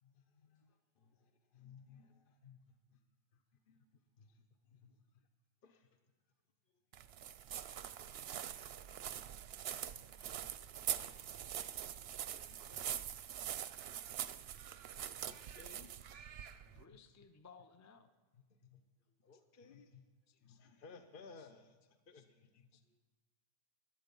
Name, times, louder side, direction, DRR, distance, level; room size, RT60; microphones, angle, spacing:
voice 1, 0.0-3.0 3.3-5.2 5.6-5.9 8.5-8.8 9.8-10.5 11.0-11.4 12.5-12.8 13.5-13.6 15.2-16.0 16.7-17.0 18.3-18.8 19.2-20.0 20.4-22.8, left 5 dB, 50° left, 7 dB, 0.9 m, -61 dB
voice 2, 6.6-7.2 16.2-16.9 19.0-19.1 22.8-22.9, left 2 dB, 80° left, -4 dB, 5.0 m, -88 dB
sound 1, 6.9-16.8, right 10 dB, 65° right, 0.8 m, -44 dB
voice 3, 16.6-18.1 20.3-20.6 22.1-22.2 22.7-22.8, left 5 dB, 20° left, 9 dB, 0.5 m, -61 dB
15.5 x 11.5 x 5.3 m, 1.2 s
omnidirectional pair, 1.2 m